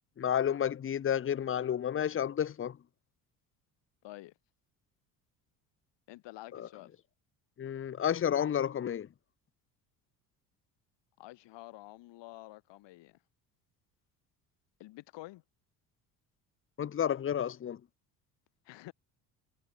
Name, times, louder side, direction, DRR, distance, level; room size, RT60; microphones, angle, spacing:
voice 1, 0.2-2.8 6.5-6.7 7.6-9.1 16.8-17.8, left 9 dB, 25° left, 0.9 m, -31 dB
voice 2, 6.1-6.9 11.2-13.2 14.8-15.4 18.6-18.9, left 18 dB, 60° left, 4.2 m, -49 dB
hypercardioid pair, 60°, 48 cm